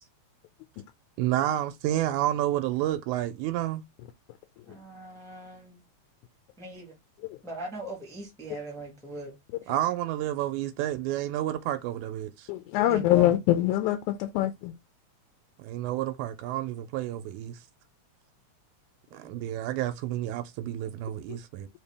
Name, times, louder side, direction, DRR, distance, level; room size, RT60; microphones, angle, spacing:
voice 1, 1.2-3.8 9.7-12.5 15.6-17.6 19.1-21.7, right 13 dB, 90° right, 2.0 m, -30 dB
voice 2, 4.7-5.8 6.6-6.9 7.4-9.3 12.9-13.3 19.1-19.3, right 2 dB, 5° left, 0.3 m, -40 dB
voice 3, 12.5-14.7 21.3-21.4, left 14 dB, 90° left, 2.0 m, -24 dB
4.7 x 2.8 x 3.3 m
omnidirectional pair, 3.4 m